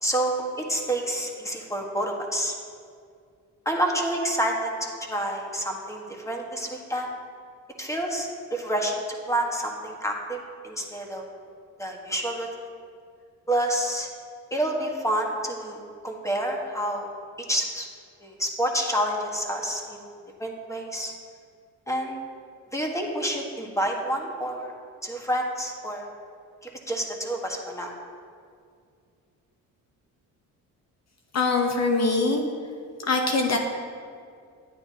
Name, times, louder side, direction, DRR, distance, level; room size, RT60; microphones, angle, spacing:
voice 1, 0.0-2.5 3.6-7.1 7.8-11.2 11.8-12.7 13.5-14.1 14.5-17.1 17.5-17.9 18.2-20.1 20.4-21.1 21.9-22.2 22.7-24.7 25.0-26.1 26.6-27.9, right 1 dB, 10° left, 1 dB, 1.4 m, -28 dB
voice 2, 31.3-32.4 33.1-33.6, left 3 dB, 45° left, 3 dB, 0.9 m, -23 dB
9.8 x 9.1 x 2.8 m, 2.3 s
cardioid pair, 75°, 36 cm